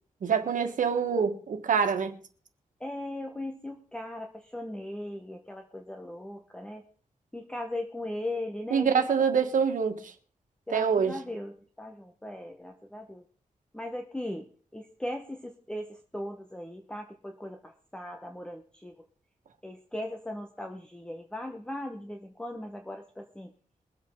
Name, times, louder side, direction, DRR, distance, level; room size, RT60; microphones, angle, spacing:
voice 1, 0.2-2.2 8.7-10.1 10.7-11.2, right 6 dB, 80° right, 1.6 m, -25 dB
voice 2, 2.8-6.8 7.3-9.0 10.7-13.2 13.7-14.5 14.7-18.9 19.6-23.5, left 1 dB, 5° left, 1.3 m, -38 dB
22.5 x 8.3 x 3.9 m
wide cardioid pair, 105°, 13 cm